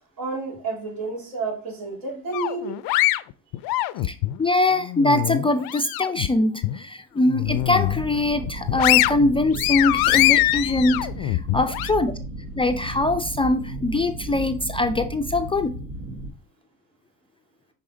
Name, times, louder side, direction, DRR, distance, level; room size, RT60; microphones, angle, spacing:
voice 1, 0.2-2.8 3.7-3.8, right 4 dB, 75° right, -2 dB, 3.5 m, -30 dB
sound 1, 2.3-4.4 4.8-6.3 6.6-6.8 7.3-8.0 8.4-11.9, left 17 dB, 75° left, 0.5 m, -23 dB
voice 2, 4.0-12.1 12.6-15.7, left 2 dB, 15° left, 8 dB, 0.4 m, -23 dB
sound 2, 7.4-16.3, right 2 dB, 60° right, 1.3 m, -35 dB
6.1 x 4.1 x 3.8 m, 0.38 s
cardioid pair, 100°, 36 cm